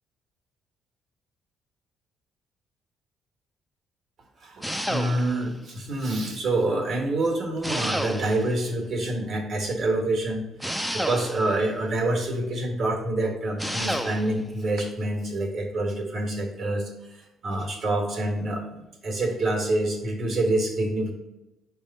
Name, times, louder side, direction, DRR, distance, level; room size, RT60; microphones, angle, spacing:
voice 1, 4.4-10.5 10.9-21.1, right 2 dB, 50° right, 1 dB, 1.5 m, -27 dB
sound 1, 4.6-5.5 7.6-8.6 10.6-11.6 13.6-14.4, equal, 5° right, 0.4 m, -30 dB
5.4 x 3.4 x 5.3 m, 0.97 s
cardioid pair, 160°, 0 cm